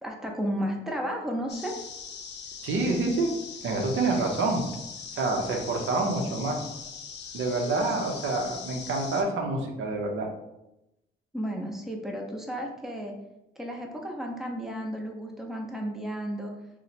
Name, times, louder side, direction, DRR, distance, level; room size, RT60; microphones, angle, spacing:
voice 1, 0.0-1.8 11.3-13.2 13.6-16.5, equal, ahead, 1 dB, 0.6 m, -33 dB
sound 1, 1.5-9.2, left 6 dB, 60° left, 0.5 m, -41 dB
voice 2, 2.6-3.4 3.6-4.6 5.1-6.7 7.3-10.3, right 3 dB, 80° right, 2 dB, 0.7 m, -27 dB
2.8 x 2.1 x 4.1 m, 0.90 s
cardioid pair, 90°, 20 cm